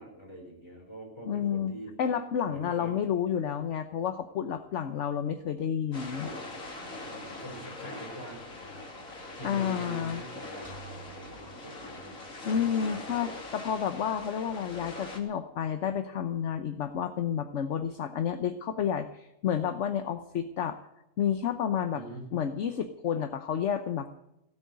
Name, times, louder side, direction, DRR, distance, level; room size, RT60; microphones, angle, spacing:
voice 1, 0.0-1.9 2.5-3.0 7.1-8.9 9.3-10.7 11.1-12.2 21.9-22.2, right 1 dB, 20° left, 0 dB, 5.2 m, -44 dB
voice 2, 1.3-6.3 9.4-10.2 12.4-20.8 21.2-22.0 22.3-24.1, left 8 dB, 65° left, 9 dB, 1.1 m, -30 dB
sound 1, 5.9-15.2, left 2 dB, 85° left, 3.2 m, -42 dB
sound 2, 10.6-12.6, right 4 dB, 30° right, 4.3 m, -51 dB
17.0 x 8.6 x 9.4 m, 0.86 s
omnidirectional pair, 1.4 m